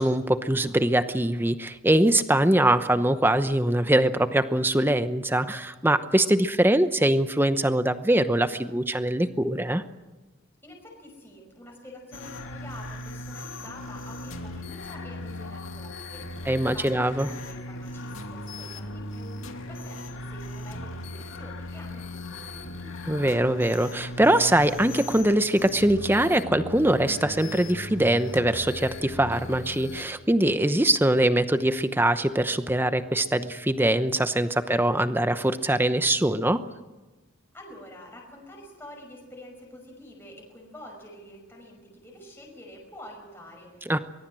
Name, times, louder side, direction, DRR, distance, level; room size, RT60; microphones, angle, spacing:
voice 1, 0.0-9.8 16.5-17.3 23.1-36.6 43.9-44.0, right 1 dB, 10° right, 11 dB, 0.9 m, -23 dB
voice 2, 10.6-22.9 37.5-44.0, left 1 dB, 10° left, -1 dB, 5.6 m, -47 dB
sound 1, 12.1-30.0, left 1 dB, 90° left, 2.5 m, -38 dB
23.5 x 21.0 x 7.7 m, 1.2 s
head